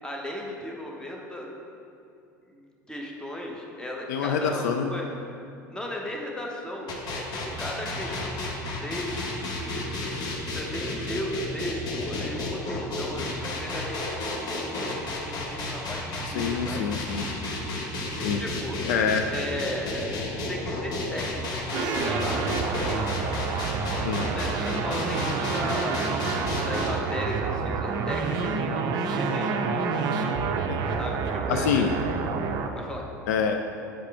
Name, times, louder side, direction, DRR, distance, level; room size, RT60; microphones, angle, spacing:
voice 1, 0.0-1.5 2.5-2.6 2.9-5.2 5.7-9.9 10.5-16.9 18.3-18.8 19.3-23.1 23.5-23.8 24.2-26.0 26.7-29.5 31.0-32.1 32.7-33.0, equal, 10° left, -1 dB, 1.0 m, -36 dB
voice 2, 4.1-4.9 16.3-17.2 18.2-18.4 18.9-19.2 24.0-24.3 30.7-30.8 31.5-31.9 33.3-33.6, left 7 dB, 65° left, 5 dB, 0.3 m, -26 dB
sound 1, 6.9-26.9, left 2 dB, 45° left, 1.0 m, -32 dB
sound 2, 21.7-32.7, right 5 dB, 45° right, 0.5 m, -28 dB
7.4 x 4.8 x 3.4 m, 2.6 s
figure-of-eight pair, 70°, 10 cm